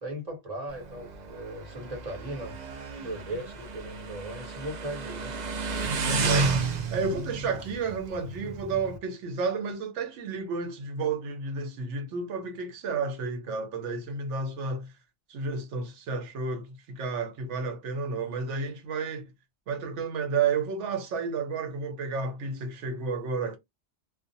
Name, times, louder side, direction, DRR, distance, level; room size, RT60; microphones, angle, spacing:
voice 1, 0.0-2.6 3.0-5.3, right 1 dB, 35° right, 1.1 m, -38 dB
Motorcycle, 0.7-9.0, right 3 dB, 55° right, 0.5 m, -32 dB
voice 2, 6.0-6.5 6.9-14.9 15.3-19.3 19.7-23.6, right 4 dB, 75° right, 1.0 m, -31 dB
2.4 x 2.1 x 2.6 m
omnidirectional pair, 1.2 m